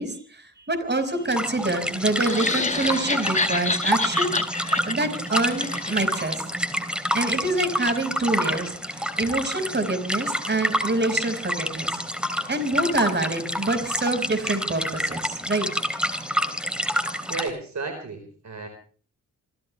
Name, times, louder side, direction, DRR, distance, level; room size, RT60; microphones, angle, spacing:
voice 1, 0.0-4.4 4.9-6.4 7.1-11.9 12.5-15.7, right 2 dB, 30° right, 9 dB, 5.3 m, -26 dB
sound 1, 1.2-17.5, equal, 5° right, 3.2 m, -28 dB
sound 2, 2.1-6.4, left 3 dB, 20° left, 1.7 m, -28 dB
voice 2, 17.3-18.7, right 4 dB, 50° right, 6 dB, 4.4 m, -33 dB
27.0 x 15.5 x 3.3 m, 0.42 s
supercardioid pair, 45°, 36 cm